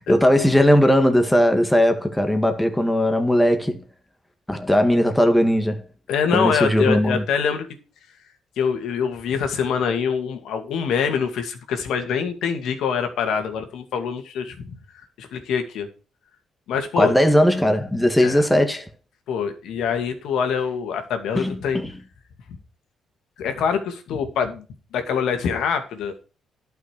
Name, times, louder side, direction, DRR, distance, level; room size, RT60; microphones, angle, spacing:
voice 1, 0.1-3.8 4.5-5.8 6.3-7.2 17.0-18.9 21.4-21.9, equal, 5° left, 1.7 m, -18 dB
voice 2, 6.1-7.7 8.6-14.8 15.2-15.9 16.7-17.1 18.2-18.5 19.3-21.8 23.4-24.6 24.9-26.1, left 6 dB, 80° left, 2.3 m, -24 dB
11.5 x 5.9 x 6.6 m
cardioid pair, 90°, 0 cm